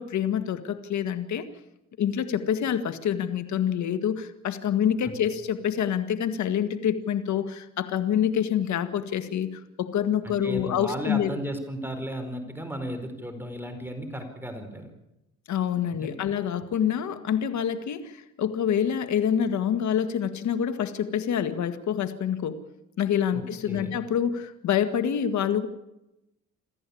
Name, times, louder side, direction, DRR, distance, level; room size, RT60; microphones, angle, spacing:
voice 1, 0.0-1.5 2.0-11.3 15.5-22.6 23.0-25.7, left 9 dB, 70° left, 10 dB, 1.8 m, -26 dB
voice 2, 10.2-14.9 15.9-16.2 23.3-23.9, equal, 5° right, 6 dB, 4.7 m, -35 dB
27.5 x 14.5 x 8.6 m, 0.90 s
cardioid pair, 90°, 30 cm